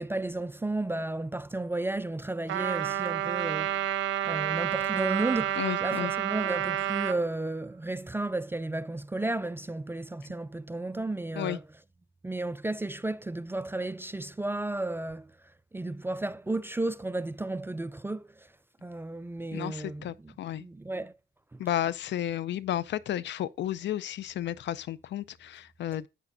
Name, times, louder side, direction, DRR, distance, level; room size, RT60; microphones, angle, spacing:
voice 1, 0.0-3.8 4.2-11.6 12.2-15.3 15.7-18.3 18.8-21.1, right 2 dB, 10° right, 0.3 m, -33 dB
Trumpet, 2.5-7.2, right 11 dB, 75° right, 0.7 m, -29 dB
Mallet percussion, 5.1-7.5, right 9 dB, 45° right, 1.0 m, -43 dB
voice 2, 5.6-6.1 11.3-11.6 19.5-20.6 21.6-26.1, left 11 dB, 65° left, 0.5 m, -32 dB
11.0 x 8.1 x 2.6 m
cardioid pair, 90°, 20 cm